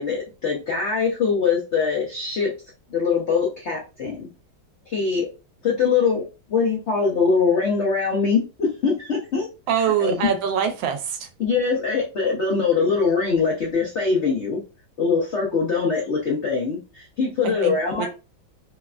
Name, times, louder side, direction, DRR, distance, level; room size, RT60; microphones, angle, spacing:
voice 1, 0.0-2.5 2.9-4.3 4.9-5.3 5.6-6.2 6.5-9.5 10.0-10.4 11.4-14.6 15.0-18.1, left 5 dB, 75° left, 0.6 m, -22 dB
voice 2, 9.7-11.3 17.6-18.1, right 8 dB, 80° right, 1.4 m, -24 dB
3.4 x 2.1 x 2.3 m
omnidirectional pair, 2.1 m